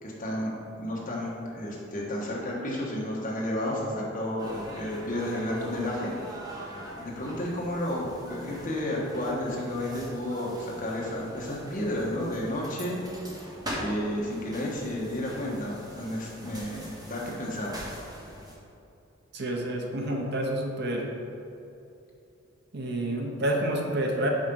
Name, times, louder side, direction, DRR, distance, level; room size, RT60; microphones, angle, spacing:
voice 1, 0.0-6.1 7.0-13.0 13.3-17.8, left 1 dB, 40° left, -4 dB, 1.3 m, -32 dB
sound 1, 4.4-18.5, equal, 20° right, 1.1 m, -42 dB
voice 2, 19.3-21.1 22.7-24.3, right 1 dB, 55° right, 1 dB, 0.8 m, -29 dB
5.3 x 4.9 x 5.4 m, 2.7 s
head